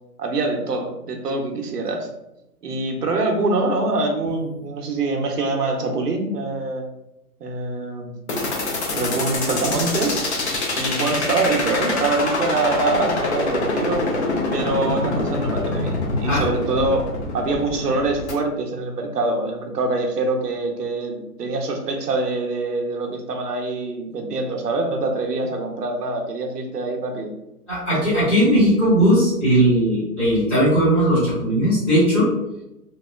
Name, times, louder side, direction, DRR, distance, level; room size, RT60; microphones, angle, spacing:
voice 1, 0.2-2.1 2.6-6.9 7.4-8.1 8.9-10.2 10.7-14.0 14.5-17.1 17.3-27.3, right 2 dB, 75° right, 3 dB, 0.8 m, -24 dB
sound 1, 8.3-18.3, left 2 dB, 45° left, 0.6 m, -25 dB
voice 2, 27.7-32.3, equal, 5° left, -18 dB, 0.6 m, -18 dB
2.9 x 2.0 x 2.3 m, 0.87 s
hypercardioid pair, 145°, 47 cm